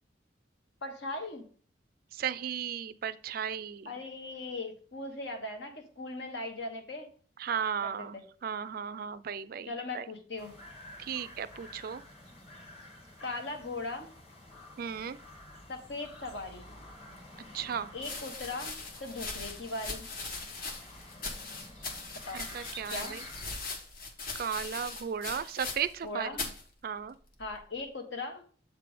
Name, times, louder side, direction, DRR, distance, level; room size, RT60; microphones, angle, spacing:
voice 1, 0.8-1.4 3.8-7.1 7.8-8.2 9.7-10.5 13.2-14.1 15.7-16.7 17.9-20.1 22.2-22.4 22.9-23.2 26.0-26.4 27.4-28.4, left 2 dB, 75° left, 4 dB, 1.3 m, -39 dB
voice 2, 2.1-3.9 7.4-9.7 9.9-10.1 11.0-12.0 14.8-15.2 17.5-17.9 22.3-23.2 24.3-26.3 26.8-27.2, right 7 dB, 50° right, 15 dB, 0.3 m, -35 dB
sound 1, 10.4-23.5, left 1 dB, 35° left, 1.6 m, -50 dB
sound 2, 16.9-17.0 17.9-26.1 26.3-26.6 27.4-27.8, left 3 dB, 50° left, 1.1 m, -40 dB
7.5 x 3.4 x 5.0 m, 0.44 s
head